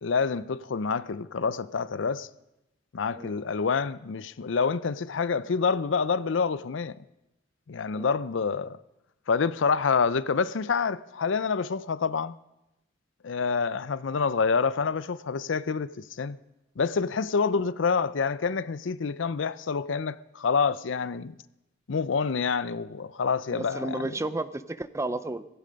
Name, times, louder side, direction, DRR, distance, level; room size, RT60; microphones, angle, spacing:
voice 1, 0.0-2.3 2.9-7.0 7.7-8.8 9.3-12.3 13.2-16.4 16.8-21.4 21.9-24.1, left 5 dB, 65° left, 0.5 m, -27 dB
voice 2, 23.5-25.5, right 2 dB, 15° right, 0.5 m, -32 dB
17.0 x 15.5 x 5.2 m
head